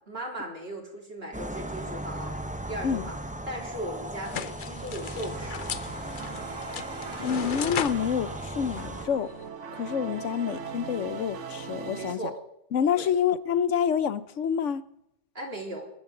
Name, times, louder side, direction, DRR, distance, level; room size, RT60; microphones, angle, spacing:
voice 1, 0.1-2.3 2.7-3.2 3.5-5.7 11.9-12.4 12.9-13.1 15.4-15.9, right 1 dB, 55° right, 3.8 m, -37 dB
sound 1, 1.3-9.1, right 1 dB, 5° right, 0.8 m, -37 dB
sound 2, 4.2-9.5, left 8 dB, 50° left, 0.7 m, -37 dB
sound 3, 5.0-12.2, right 6 dB, 85° right, 1.4 m, -40 dB
voice 2, 7.2-9.3 9.7-12.2 12.7-14.8, left 8 dB, 90° left, 1.2 m, -27 dB
23.0 x 13.5 x 3.8 m
omnidirectional pair, 1.2 m